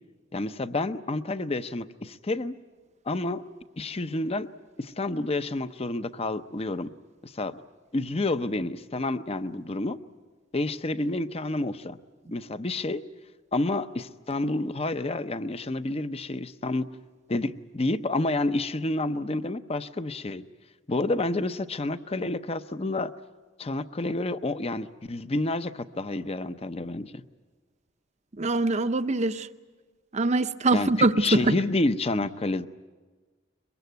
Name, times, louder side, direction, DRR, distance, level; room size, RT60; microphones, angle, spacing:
voice 1, 0.3-2.5 3.1-3.4 3.8-4.5 4.8-6.9 7.2-7.6 7.9-10.0 10.5-12.0 12.3-13.0 13.5-17.0 17.3-20.4 20.9-23.1 23.6-27.2 30.7-32.7, left 2 dB, 30° left, 0.7 m, -29 dB
voice 2, 28.4-29.5 30.1-31.6, right 2 dB, 35° right, 0.7 m, -23 dB
23.0 x 22.5 x 9.3 m
head